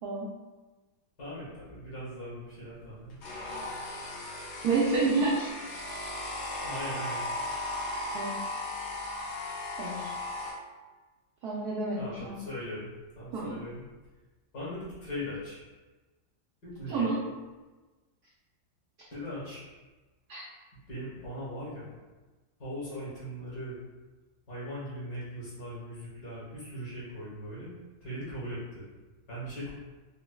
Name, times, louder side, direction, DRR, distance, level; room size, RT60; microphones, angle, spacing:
voice 1, 1.2-3.2 6.6-7.3 12.0-13.8 14.5-15.6 16.6-17.1 19.1-19.6 20.9-22.0 22.6-23.8 24.5-27.7 28.0-28.9 29.3-29.7, equal, 55° left, -9 dB, 1.8 m, -39 dB
sound 1, 3.2-10.5, left 1 dB, 90° left, 1.6 m, -36 dB
voice 2, 4.6-5.5 8.1-8.7 9.8-10.1 11.4-12.4 13.3-13.6 16.9-17.2 20.3-20.4, right 3 dB, 85° right, -5 dB, 0.8 m, -29 dB
5.0 x 2.1 x 2.2 m, 1.2 s
omnidirectional pair, 2.3 m